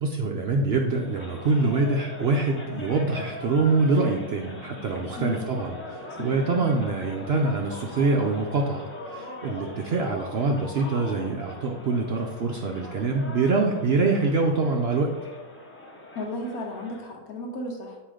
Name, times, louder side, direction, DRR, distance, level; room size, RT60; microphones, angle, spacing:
voice 1, 0.0-8.8 9.1-15.1, right 3 dB, 60° right, 1 dB, 0.7 m, -25 dB
sound 1, 0.9-17.1, left 2 dB, 10° left, 0.6 m, -41 dB
voice 2, 5.2-5.5 6.2-6.5 16.1-18.0, left 1 dB, 75° left, 0 dB, 1.5 m, -34 dB
7.6 x 3.0 x 4.9 m, 1.1 s
omnidirectional pair, 1.6 m